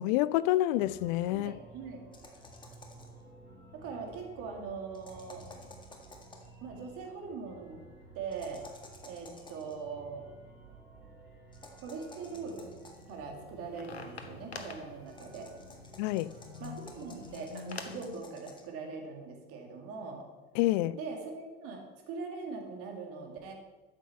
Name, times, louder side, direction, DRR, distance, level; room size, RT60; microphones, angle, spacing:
voice 1, 0.0-1.5 16.0-16.3 20.6-21.0, left 15 dB, 50° left, 0.4 m, -28 dB
sound 1, 0.7-17.3, right 2 dB, 90° right, 3.4 m, -54 dB
voice 2, 1.3-2.0 3.7-5.4 6.6-7.9 8.1-8.6 9.1-10.2 11.8-12.7 13.1-15.5 16.6-20.3 20.9-23.5, right 4 dB, 50° right, 2.4 m, -41 dB
sound 2, 2.1-3.2 4.9-6.5 8.3-9.7 11.5-13.1 15.1-18.7, left 2 dB, 15° left, 1.8 m, -53 dB
sound 3, 13.0-18.1, left 5 dB, 85° left, 0.9 m, -47 dB
12.5 x 7.7 x 4.4 m
figure-of-eight pair, 70°, 30 cm